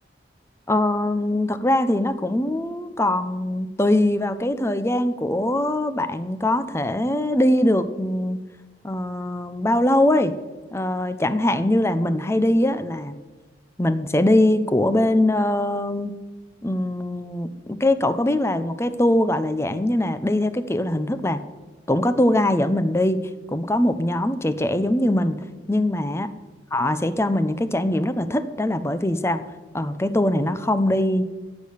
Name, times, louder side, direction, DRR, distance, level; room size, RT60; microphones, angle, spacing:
voice 1, 0.7-8.4 8.8-10.3 10.7-13.2 13.8-16.2 16.6-21.4 21.9-23.2 23.5-25.4 25.7-26.3 26.7-29.4 29.7-31.3, left 1 dB, 15° left, 12 dB, 0.7 m, -22 dB
15.0 x 8.5 x 6.6 m, 1.3 s
head